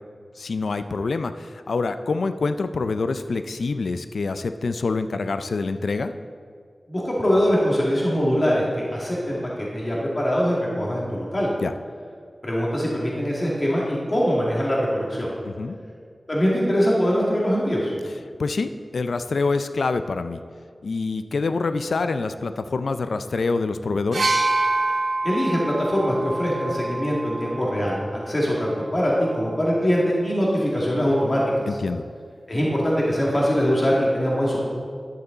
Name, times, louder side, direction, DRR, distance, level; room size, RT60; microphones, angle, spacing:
voice 1, 0.4-6.1 11.6-11.7 15.5-15.8 18.4-20.4 20.8-24.3 31.7-32.0, left 3 dB, 85° left, 10 dB, 0.4 m, -26 dB
voice 2, 6.9-9.4 9.7-11.5 12.4-15.3 16.3-17.9 25.2-28.0 28.2-31.7 32.5-34.7, equal, 40° left, -4 dB, 2.2 m, -22 dB
sound 1, 24.1-27.9 29.0-29.1, right 2 dB, 70° right, 0.7 m, -26 dB
11.5 x 6.8 x 3.9 m, 2.1 s
wide cardioid pair, 55°, 0 cm